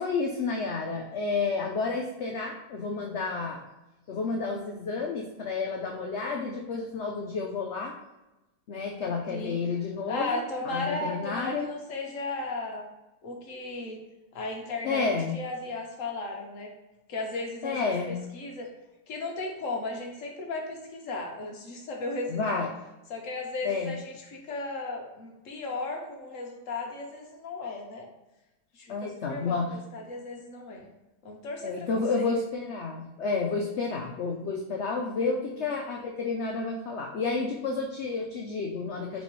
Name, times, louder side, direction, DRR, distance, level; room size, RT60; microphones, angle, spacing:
voice 1, 0.0-3.6 4.1-8.0 8.7-11.7 14.8-15.4 17.6-18.2 22.3-22.7 23.6-24.0 28.9-29.7 31.6-39.2, left 4 dB, 85° left, 1 dB, 0.6 m, -30 dB
voice 2, 10.1-12.8 13.2-14.0 14.3-16.7 17.1-18.7 19.1-22.6 23.1-28.1 28.7-30.9 31.2-32.3 35.3-35.5, left 2 dB, 60° left, 1 dB, 1.1 m, -35 dB
4.1 x 4.0 x 3.1 m, 1.0 s
omnidirectional pair, 1.8 m